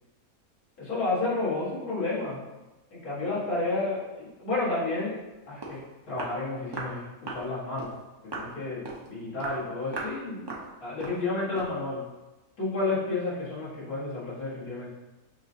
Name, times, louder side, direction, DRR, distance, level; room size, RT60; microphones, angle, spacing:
voice 1, 0.8-2.4 2.9-5.2 5.5-5.8 6.1-7.9 8.2-8.8 9.1-10.5 10.8-12.0 12.6-14.9, left 3 dB, 85° left, -9 dB, 2.2 m, -31 dB
Walk footsteps, 5.6-5.8 6.2-6.4 6.7-7.0 7.3-7.5 7.8-8.0 8.3-8.5 8.8-9.1 9.4-9.6 9.9-10.2 10.5-10.7 11.0-11.2 11.6-11.8, right 2 dB, 40° right, 0.3 m, -37 dB
6.8 x 2.8 x 2.7 m, 1.1 s
omnidirectional pair, 1.5 m